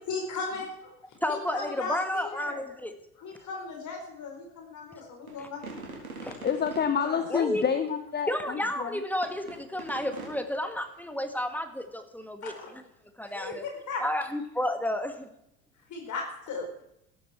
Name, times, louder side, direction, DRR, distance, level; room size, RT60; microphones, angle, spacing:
voice 1, 0.1-0.9 1.3-2.6 3.2-5.7 7.0-7.2 12.4-12.7 13.2-14.0 15.9-16.7, left 4 dB, 45° left, 2 dB, 4.7 m, -37 dB
voice 2, 1.2-2.9 5.4-5.5 6.2-6.4 7.3-7.6 8.3-12.5 13.2-13.6 14.0-15.3, left 1 dB, 5° left, 8 dB, 1.8 m, -31 dB
sound 1, 5.3-7.0 9.2-10.5, right 3 dB, 90° right, 3.7 m, -41 dB
voice 3, 6.4-9.0, left 7 dB, 25° left, 9 dB, 1.1 m, -28 dB
15.5 x 13.5 x 4.5 m, 0.79 s
figure-of-eight pair, 70°, 42 cm